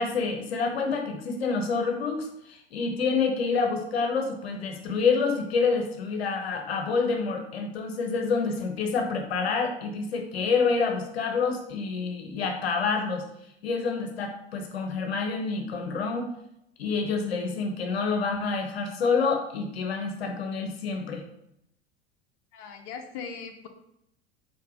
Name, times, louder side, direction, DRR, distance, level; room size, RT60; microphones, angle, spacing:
voice 1, 0.0-13.2 13.6-16.3 16.8-21.2, left 4 dB, 70° left, 4 dB, 1.0 m, -27 dB
voice 2, 22.5-23.7, left 6 dB, 50° left, 3 dB, 0.9 m, -39 dB
4.7 x 4.5 x 4.8 m, 0.78 s
figure-of-eight pair, 75°, 32 cm